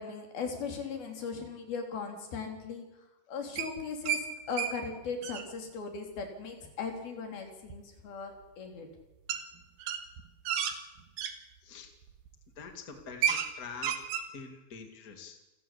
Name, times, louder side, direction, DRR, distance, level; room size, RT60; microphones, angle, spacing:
voice 1, 0.0-2.9 3.3-8.9, left 5 dB, 85° left, 3 dB, 5.2 m, -38 dB
sound 1, 3.6-4.2 4.6-4.7 5.0-5.5 7.7-7.8 9.3-9.4 9.8-11.3 12.0-12.3 12.6-12.7 13.0-13.5 13.8-14.3, right 8 dB, 85° right, 3.3 m, -31 dB
voice 2, 12.6-13.9 14.3-15.4, left 5 dB, 30° left, 5 dB, 2.4 m, -45 dB
28.5 x 14.0 x 8.4 m, 1.0 s
omnidirectional pair, 4.2 m